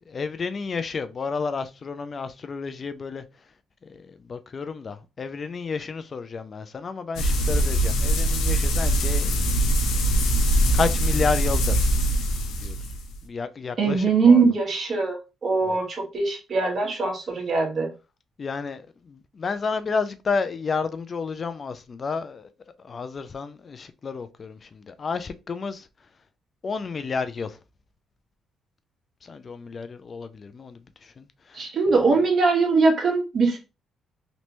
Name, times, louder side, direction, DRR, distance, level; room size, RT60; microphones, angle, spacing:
voice 1, 0.1-3.2 3.8-9.8 10.7-11.8 12.6-12.8 13.2-14.4 15.6-15.8 18.4-22.5 22.8-25.9 26.6-27.6 29.2-32.3, left 5 dB, 40° left, 0.4 m, -31 dB
sound 1, 7.2-13.2, right 1 dB, 90° left, 0.6 m, -22 dB
voice 2, 13.8-17.9 31.5-33.6, right 4 dB, 50° right, 1.3 m, -21 dB
3.2 x 2.6 x 3.0 m
cardioid pair, 90°, 0 cm